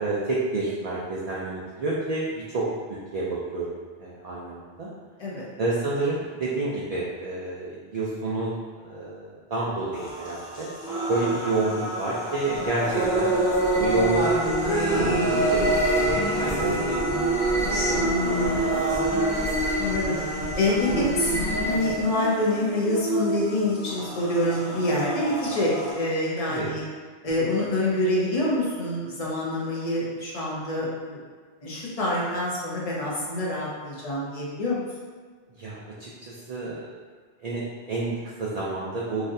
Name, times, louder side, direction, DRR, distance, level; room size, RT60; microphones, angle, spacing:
voice 1, 0.0-4.9 5.6-8.5 8.8-10.7 11.1-13.3 13.8-14.3 14.6-17.1 17.7-18.9 26.5-26.7 35.6-36.9 37.4-39.2, right 2 dB, 55° right, -6 dB, 0.4 m, -30 dB
sound 1, 9.9-25.9, right 2 dB, 80° left, 1.2 m, -27 dB
sound 2, 12.4-22.2, equal, 20° left, 0.3 m, -29 dB
voice 2, 19.8-20.2 20.6-26.8 27.2-31.2 31.6-34.8, left 1 dB, 35° left, -5 dB, 0.7 m, -26 dB
3.9 x 2.6 x 2.6 m, 1.5 s
omnidirectional pair, 1.1 m